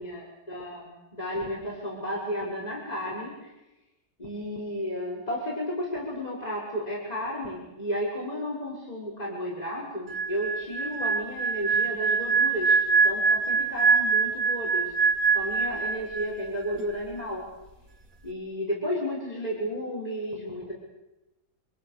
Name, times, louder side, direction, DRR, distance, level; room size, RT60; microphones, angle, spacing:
voice 1, 0.0-3.5 4.2-14.9 15.3-17.5 18.2-20.7, equal, 25° left, -4 dB, 6.4 m, -33 dB
sound 1, 10.1-16.5 16.7-17.0, right 5 dB, 55° right, 2.5 m, -24 dB
28.5 x 26.5 x 6.9 m, 0.97 s
omnidirectional pair, 1.7 m